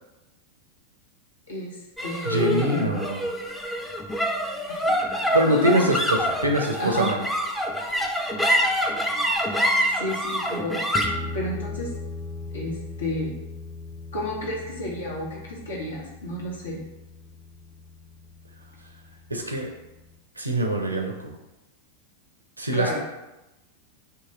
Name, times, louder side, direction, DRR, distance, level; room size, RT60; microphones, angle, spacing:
voice 1, 1.5-2.9 4.7-5.8 6.7-7.1 9.9-10.8 11.1-11.9 12.5-13.3 14.1-16.8 22.7-23.0, left 1 dB, 70° left, -3 dB, 1.0 m, -31 dB
sound 1, 2.0-18.5, equal, ahead, 0.5 m, -28 dB
voice 2, 2.2-3.2 5.3-7.2 19.3-19.7 20.4-21.4 22.6-23.0, right 1 dB, 80° right, 2 dB, 0.6 m, -24 dB
2.9 x 2.8 x 3.7 m, 0.97 s
figure-of-eight pair, 90°, 0 cm